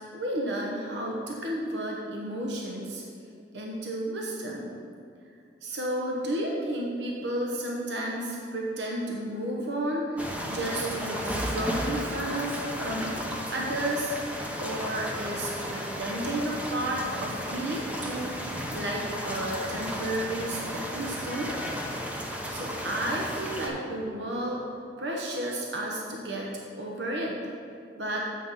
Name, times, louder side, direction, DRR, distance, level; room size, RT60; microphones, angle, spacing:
voice 1, 0.1-3.0 3.5-4.7 5.6-13.1 13.5-14.2 14.6-21.6 22.5-24.6 25.0-26.5 26.8-27.4 28.0-28.3, right 1 dB, 65° right, -2 dB, 1.0 m, -32 dB
sound 1, 10.2-23.7, equal, 10° right, 0.7 m, -34 dB
7.5 x 5.9 x 5.6 m, 2.4 s
head